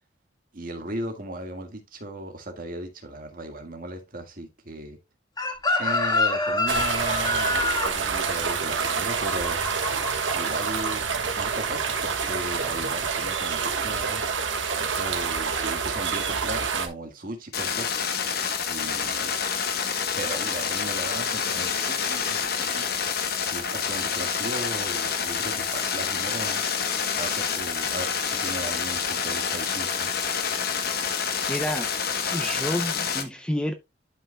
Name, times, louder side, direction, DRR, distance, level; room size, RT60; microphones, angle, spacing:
voice 1, 0.5-5.0 5.8-9.6 10.3-11.0 11.4-14.2 14.8-17.9 18.7-19.3 20.2-22.9 23.5-26.6 27.1-30.1, right 1 dB, 50° right, 1.6 m, -36 dB
Chicken rooster, 5.4-10.3 10.6-10.9, left 3 dB, 20° left, 1.4 m, -26 dB
sound 1, 6.7-16.9, right 5 dB, 85° right, 1.4 m, -27 dB
sound 2, 17.5-33.2, left 6 dB, 55° left, 1.0 m, -28 dB
voice 2, 31.5-31.9 32.3-33.7, left 1 dB, 5° left, 0.5 m, -29 dB
11.0 x 5.3 x 2.2 m
head